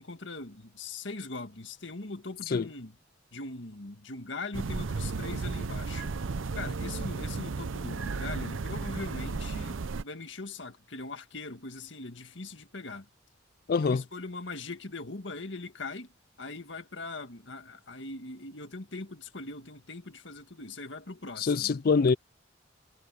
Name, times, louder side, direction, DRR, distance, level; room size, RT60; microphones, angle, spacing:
voice 1, 0.0-3.0 3.3-6.1 6.5-9.8 10.0-13.1 13.8-16.1 16.4-21.7, left 3 dB, 65° left, 2.0 m, -41 dB
sound 1, 4.5-10.0, right 4 dB, 85° right, 0.7 m, -34 dB
voice 2, 13.7-14.0 21.4-22.1, left 5 dB, 50° left, 0.4 m, -24 dB
head